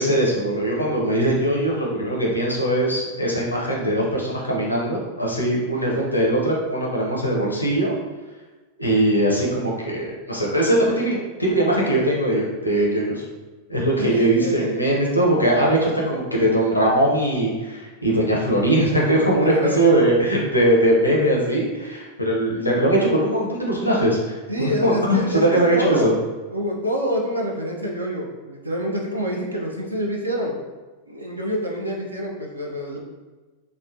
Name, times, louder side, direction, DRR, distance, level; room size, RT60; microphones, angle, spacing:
voice 1, 0.0-7.9 8.8-13.2 13.7-26.1, right 1 dB, 85° left, -3 dB, 0.6 m, -20 dB
voice 2, 14.0-14.7 18.9-19.0 19.3-19.8 24.5-26.2 26.5-30.6 31.1-33.0, equal, 85° right, -1 dB, 0.4 m, -27 dB
3.0 x 2.1 x 2.6 m, 1.2 s
figure-of-eight pair, 90°, 0 cm